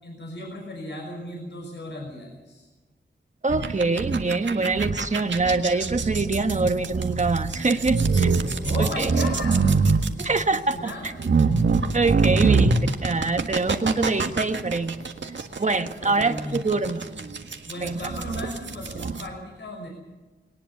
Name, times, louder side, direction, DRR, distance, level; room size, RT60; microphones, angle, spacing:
voice 1, 0.0-2.7 8.6-9.9 10.5-11.5 12.3-12.4 16.0-16.8 17.7-19.9, left 1 dB, 75° left, 0 dB, 5.9 m, -35 dB
voice 2, 3.4-8.3 8.8-9.1 10.2-11.1 11.9-12.7 13.0-15.0 15.6-17.0 17.8-18.0, right 3 dB, 40° right, 7 dB, 1.5 m, -24 dB
sound 1, 3.5-19.2, right 4 dB, 75° right, 1.7 m, -24 dB
21.0 x 19.0 x 6.9 m, 1.2 s
wide cardioid pair, 105°, 19 cm